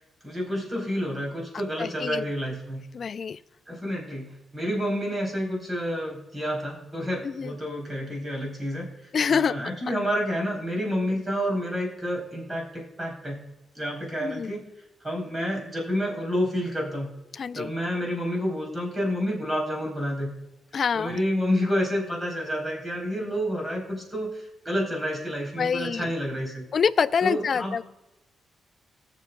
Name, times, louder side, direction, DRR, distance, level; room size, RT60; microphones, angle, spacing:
voice 1, 0.2-2.8 3.7-13.5 13.8-14.6 15.0-17.1 17.6-20.3 20.9-26.6 27.2-27.8, equal, 20° right, -1 dB, 3.8 m, -29 dB
voice 2, 1.8-2.3 2.9-3.4 7.2-7.5 9.1-9.5 14.2-14.5 17.3-17.7 20.7-21.2 25.6-26.1 26.7-27.8, left 6 dB, 50° left, 16 dB, 0.3 m, -26 dB
20.0 x 6.8 x 2.3 m, 0.96 s
cardioid pair, 100°, 0 cm